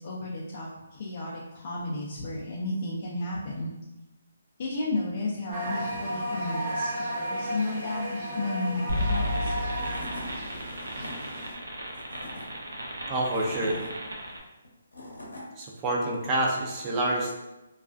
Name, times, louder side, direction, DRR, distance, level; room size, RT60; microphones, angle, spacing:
voice 1, 0.0-3.7 4.6-9.8, left 2 dB, 45° left, -6 dB, 0.4 m, -33 dB
sound 1, 5.5-11.5, equal, 45° right, 1.0 m, -33 dB
sound 2, 8.9-14.4, equal, 85° right, 0.5 m, -33 dB
Tools / Wood, 9.4-9.5 9.7-10.3 10.8-11.1 11.9-12.5 13.1-13.9 14.6-15.4, left 1 dB, 85° left, 0.7 m, -41 dB
voice 2, 13.1-13.8 15.6-17.3, right 1 dB, 20° right, -3 dB, 0.4 m, -27 dB
2.3 x 2.2 x 2.4 m, 1.0 s
hypercardioid pair, 155°, 0 cm